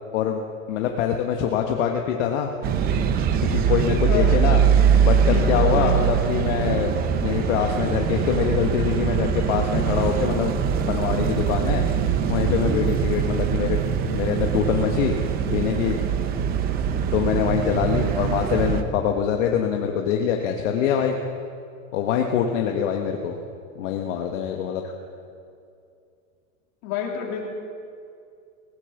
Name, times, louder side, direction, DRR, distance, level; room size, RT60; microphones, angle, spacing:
voice 1, 0.7-2.5 3.5-4.6 5.0-6.9 7.2-10.6 10.9-11.8 12.3-13.8 14.1-15.2 15.5-16.0 17.1-21.2 21.9-23.4 23.7-24.8, left 8 dB, 60° left, 3 dB, 1.4 m, -24 dB
sound 1, 2.6-18.8, right 7 dB, 25° right, 0.7 m, -22 dB
voice 2, 26.8-27.4, left 8 dB, 45° left, -1 dB, 3.1 m, -28 dB
19.0 x 10.0 x 7.1 m, 2.4 s
supercardioid pair, 155°, 40 cm